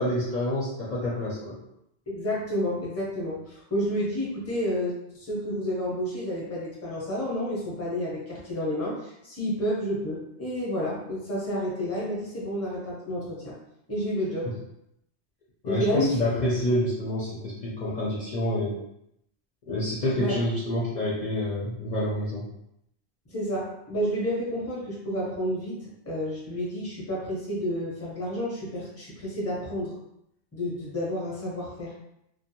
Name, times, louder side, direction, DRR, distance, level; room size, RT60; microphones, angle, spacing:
voice 1, 0.0-1.6 15.6-18.7 19.7-22.4, left 1 dB, 50° left, -8 dB, 0.6 m, -27 dB
voice 2, 2.1-13.5 13.9-14.5 15.6-16.2 20.2-20.4 23.3-25.7 26.0-30.0 30.5-31.9, equal, 15° left, -5 dB, 0.7 m, -30 dB
2.5 x 2.2 x 2.9 m, 0.79 s
omnidirectional pair, 1.1 m